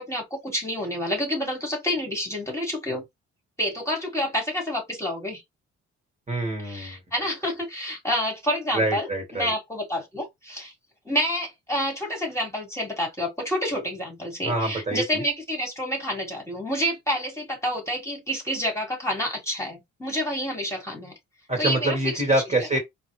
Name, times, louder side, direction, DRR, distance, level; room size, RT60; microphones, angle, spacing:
voice 1, 0.0-3.0 3.6-5.4 6.6-10.7 11.0-21.1 21.6-22.2, equal, 10° left, 1.6 m, -28 dB
voice 2, 6.3-7.0 8.7-9.5 14.4-15.2 21.5-22.8, right 2 dB, 20° right, 1.6 m, -25 dB
3.8 x 2.1 x 3.1 m
cardioid pair, 90°, 30 cm